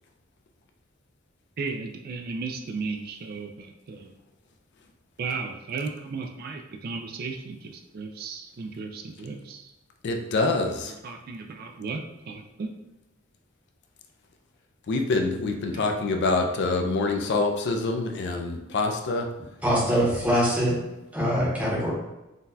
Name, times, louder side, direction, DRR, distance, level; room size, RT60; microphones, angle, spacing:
voice 1, 1.6-4.1 5.2-9.7 10.8-12.7 15.7-15.9, right 4 dB, 50° right, 4 dB, 0.3 m, -35 dB
voice 2, 10.0-10.9 14.9-19.3, left 3 dB, 55° left, 4 dB, 0.4 m, -26 dB
voice 3, 19.6-20.8 21.1-21.9, equal, 5° right, -6 dB, 0.9 m, -23 dB
3.9 x 2.2 x 2.6 m, 1.0 s
head